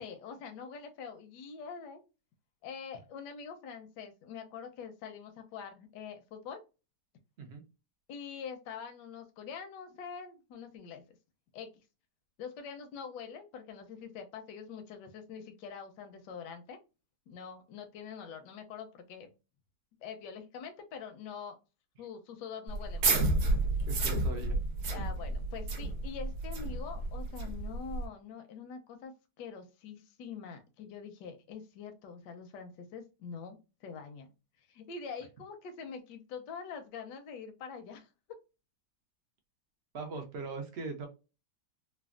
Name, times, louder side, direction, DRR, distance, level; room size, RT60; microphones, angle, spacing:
voice 1, 0.0-2.0 2.6-6.6 8.1-11.0 11.5-11.7 12.4-16.8 17.3-19.3 20.0-21.6 22.0-23.1 24.9-34.3 34.7-38.1, left 6 dB, 75° left, 6 dB, 1.2 m, -45 dB
sound 1, 22.7-28.1, right 2 dB, 55° right, 0.9 m, -31 dB
voice 2, 23.9-24.6 39.9-41.1, right 3 dB, 75° right, 4 dB, 0.6 m, -40 dB
3.3 x 2.0 x 2.3 m, 0.30 s
omnidirectional pair, 1.9 m